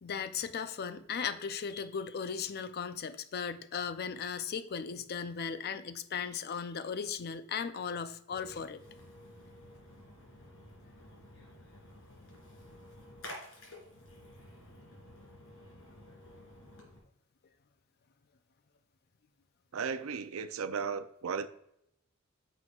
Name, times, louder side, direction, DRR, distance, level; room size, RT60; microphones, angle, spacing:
voice 1, 0.0-8.8, left 6 dB, 50° left, 0.5 m, -37 dB
Splash splatter, 8.3-17.0, left 1 dB, 75° left, 3.0 m, -52 dB
voice 2, 19.7-21.5, right 6 dB, 80° right, 0.5 m, -35 dB
9.5 x 6.2 x 2.4 m
head